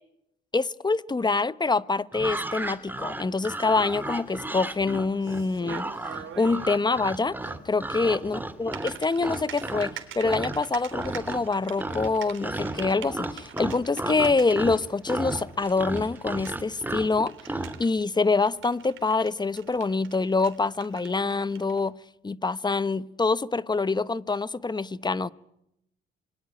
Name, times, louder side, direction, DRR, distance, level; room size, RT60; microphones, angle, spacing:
voice 1, 0.5-5.8 6.4-7.4 7.6-17.3 17.8-21.9 22.2-25.3, left 3 dB, 20° left, 1.0 m, -25 dB
sound 1, 2.1-9.9 10.2-10.7 10.9-11.5 11.8-17.8, right 2 dB, 10° right, 2.6 m, -33 dB
Typing, 3.8-21.9, right 10 dB, 70° right, 3.6 m, -46 dB
27.0 x 22.5 x 9.4 m
cardioid pair, 90°, 21 cm